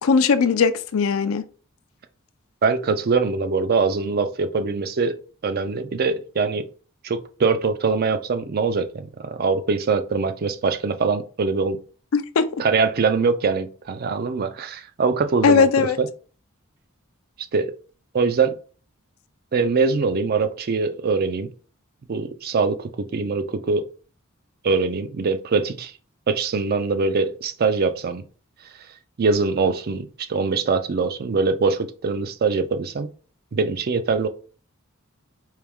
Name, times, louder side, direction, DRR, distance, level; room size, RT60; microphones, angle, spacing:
voice 1, 0.0-1.4 12.1-12.4 15.4-16.0, left 5 dB, 75° left, 0.4 m, -18 dB
voice 2, 2.6-5.2 5.4-6.7 7.0-11.8 12.6-15.7 16.0-16.1 17.5-17.7 18.1-18.5 19.5-21.5 22.1-23.8 24.6-25.9 26.3-28.2 29.2-33.1 33.5-34.3, right 4 dB, 45° right, 0.4 m, -23 dB
4.5 x 2.3 x 3.5 m
head